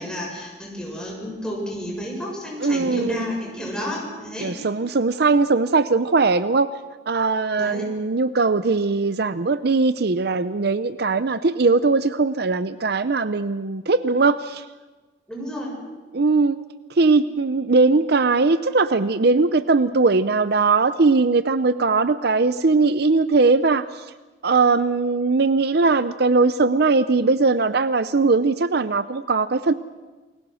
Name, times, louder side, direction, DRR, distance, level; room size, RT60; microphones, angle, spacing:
voice 1, 0.0-4.5 7.6-7.8 15.3-15.7, equal, 5° left, -2 dB, 7.4 m, -31 dB
voice 2, 2.6-3.3 4.4-6.7 7.1-14.7 16.1-16.6 16.9-24.0 24.4-29.7, right 3 dB, 60° right, 13 dB, 0.7 m, -20 dB
29.0 x 21.5 x 6.3 m, 1.2 s
head